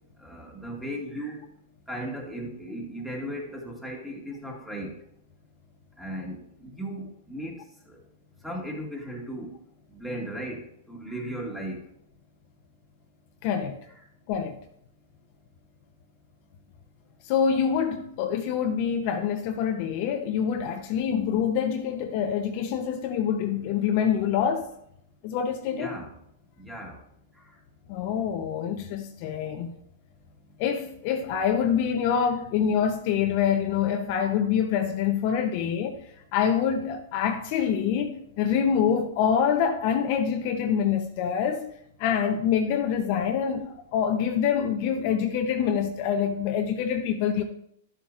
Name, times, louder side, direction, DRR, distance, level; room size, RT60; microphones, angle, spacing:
voice 1, 0.2-1.4 1.9-5.0 6.0-7.6 7.9-8.0 8.4-9.6 9.9-11.8 13.8-14.0 25.7-26.1 26.6-27.0, right 1 dB, ahead, 2.0 m, -36 dB
voice 2, 13.4-13.8 14.3-14.6 17.2-24.7 25.2-26.0 27.9-29.7 30.6-36.0 36.3-41.7 42.0-47.4, left 8 dB, 45° left, 0.8 m, -26 dB
12.0 x 7.2 x 2.5 m
hypercardioid pair, 135°, 0 cm